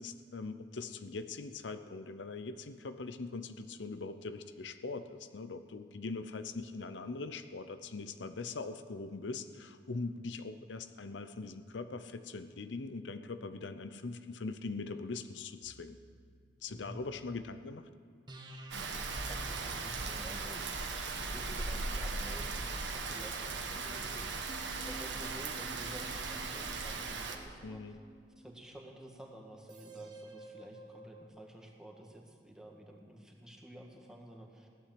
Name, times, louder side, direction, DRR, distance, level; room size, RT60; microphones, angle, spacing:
voice 1, 0.0-16.0 16.6-17.9 27.6-28.0, left 3 dB, 85° left, 11 dB, 0.7 m, -42 dB
sound 1, 15.6-17.6 18.3-23.5 24.5-28.7 29.7-31.2, right 1 dB, 25° right, 1.2 m, -53 dB
voice 2, 16.7-17.0 19.3-24.3 24.8-28.0 28.4-34.7, right 1 dB, 5° right, 0 dB, 1.7 m, -51 dB
Rain, 18.7-27.4, right 3 dB, 90° right, 1.4 m, -38 dB
16.0 x 11.5 x 7.7 m, 2.1 s
head